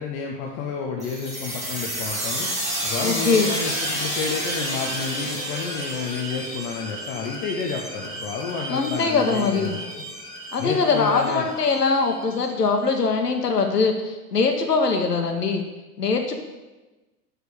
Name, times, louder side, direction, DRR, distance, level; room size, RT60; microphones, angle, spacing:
voice 1, 0.0-2.5 2.8-10.0 10.6-11.5, left 5 dB, 15° left, 0 dB, 0.4 m, -30 dB
sound 1, 1.0-12.4, right 1 dB, 15° right, 2.0 m, -31 dB
voice 2, 3.0-3.5 8.7-9.7 10.5-15.6 16.0-16.3, left 4 dB, 80° left, 4 dB, 1.0 m, -22 dB
6.7 x 5.0 x 6.7 m, 1.1 s
figure-of-eight pair, 95°, 47 cm